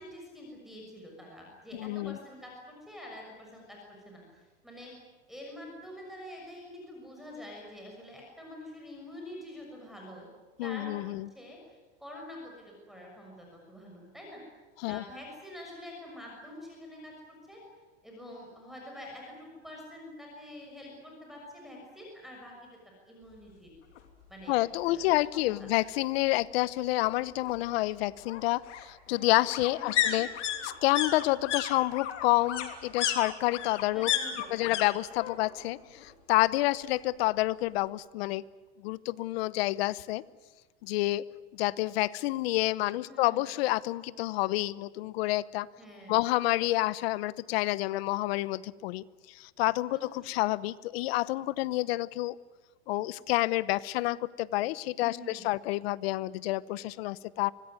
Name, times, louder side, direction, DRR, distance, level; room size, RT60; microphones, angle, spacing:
voice 1, 0.0-4.9 5.3-10.3 10.6-11.0 11.3-14.4 14.8-17.6 18.0-22.7 23.1-23.7 24.3-24.6 24.8-25.7 29.8-30.2 33.9-34.7 43.0-43.4 45.8-46.2 49.9-50.3 55.0-55.5, left 1 dB, ahead, -1 dB, 6.4 m, -46 dB
voice 2, 1.8-2.2 10.6-11.3 14.8-15.0 24.5-30.3 30.6-34.1 34.5-38.4 38.8-40.2 40.8-41.2 41.5-45.7 46.1-49.0 49.3-52.4 52.9-57.5, left 18 dB, 60° left, 19 dB, 0.9 m, -29 dB
sound 1, 24.0-24.1 24.4-24.5 24.8-25.8 27.1-34.9 35.1-35.7 35.9-37.0 37.3-37.4, left 10 dB, 85° left, 3.3 m, -34 dB
25.5 x 19.5 x 9.5 m, 1.3 s
supercardioid pair, 145°, 35 cm